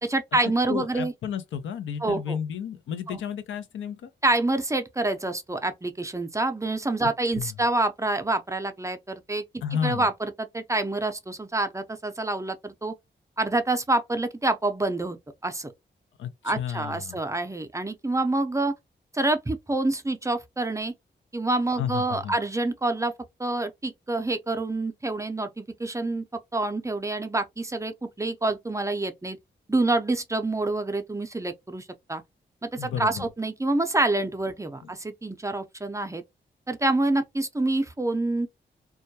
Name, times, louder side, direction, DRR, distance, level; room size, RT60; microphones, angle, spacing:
voice 1, 0.0-1.1 2.0-2.4 3.1-3.2 4.2-9.4 9.8-12.9 13.4-15.2 15.4-15.7 16.4-18.7 19.1-20.9 21.3-23.1 23.4-26.2 26.5-29.4 29.7-32.2 32.6-36.2 36.7-38.5, right 2 dB, 15° right, 0.5 m, -27 dB
voice 2, 0.7-4.1 7.4-7.5 9.6-10.1 16.2-17.2 21.8-22.3 32.8-33.3 34.8-34.9, left 8 dB, 90° left, 0.5 m, -32 dB
2.2 x 2.1 x 2.7 m
cardioid pair, 60°, 19 cm